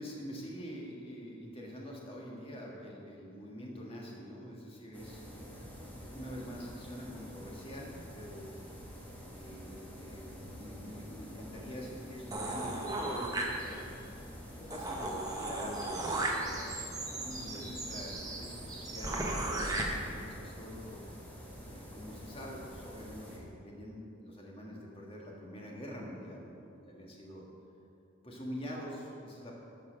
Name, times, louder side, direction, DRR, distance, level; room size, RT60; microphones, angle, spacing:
voice 1, 0.0-8.5 9.3-13.9 14.6-21.0 21.6-27.4 28.2-29.5, equal, 25° left, -2 dB, 1.6 m, -46 dB
sound 1, 4.9-23.4, equal, 10° left, 1.4 m, -48 dB
sound 2, 12.3-14.0 14.4-14.5 14.7-19.8, right 2 dB, 15° right, 1.0 m, -36 dB
12.0 x 5.5 x 6.3 m, 2.6 s
head